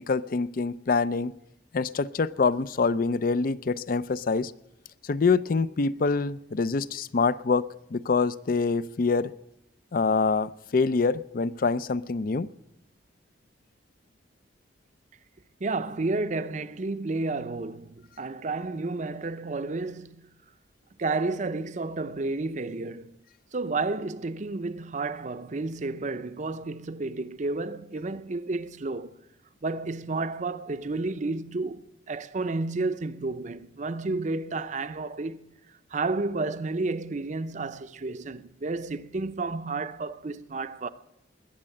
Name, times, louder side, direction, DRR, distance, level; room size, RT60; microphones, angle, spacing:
voice 1, 0.0-1.4 1.7-4.5 5.0-9.3 9.9-12.5, left 4 dB, 50° left, 0.5 m, -25 dB
voice 2, 15.6-20.3 21.0-23.1 23.5-29.1 29.6-35.5 35.9-40.9, right 3 dB, 40° right, 0.6 m, -31 dB
20.5 x 7.5 x 8.9 m
head